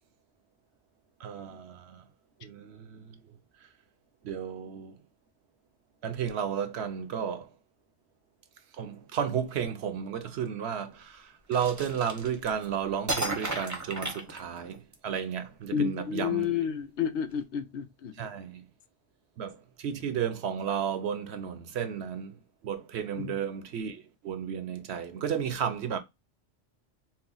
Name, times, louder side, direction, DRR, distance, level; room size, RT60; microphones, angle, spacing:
voice 1, 1.2-2.1 2.4-3.2 4.2-5.0 6.0-7.5 8.8-16.5 18.2-18.6 19.4-22.3 22.6-26.0, right 8 dB, 65° right, 0.8 m, -33 dB
sound 1, 11.5-12.7 13.1-14.9, right 2 dB, 20° right, 0.7 m, -34 dB
voice 2, 15.7-18.1 23.2-23.3, left 8 dB, 70° left, 0.8 m, -30 dB
4.3 x 2.1 x 3.8 m
omnidirectional pair, 1.2 m